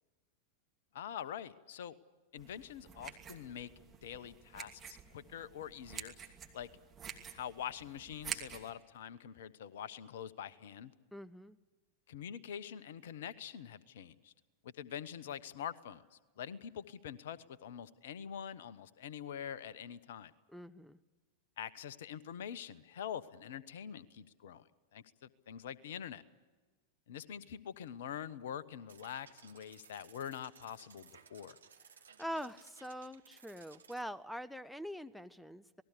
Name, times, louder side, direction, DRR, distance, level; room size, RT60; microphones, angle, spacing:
voice 1, 0.9-2.0 2.3-3.7 4.0-6.1 6.5-6.7 7.3-10.9 12.1-14.3 14.6-16.0 16.4-20.3 21.6-24.7 24.9-26.2 27.1-31.6, left 9 dB, 55° left, 18 dB, 1.0 m, -45 dB
sound 1, 2.4-8.7, right 8 dB, 20° right, 2.7 m, -48 dB
voice 2, 11.1-11.6 20.5-21.0 32.2-35.8, equal, ahead, 20 dB, 0.7 m, -44 dB
car bot, 28.9-34.0, right 6 dB, 70° right, 1.3 m, -60 dB
27.5 x 19.5 x 8.3 m, 1.3 s
figure-of-eight pair, 90°, 0 cm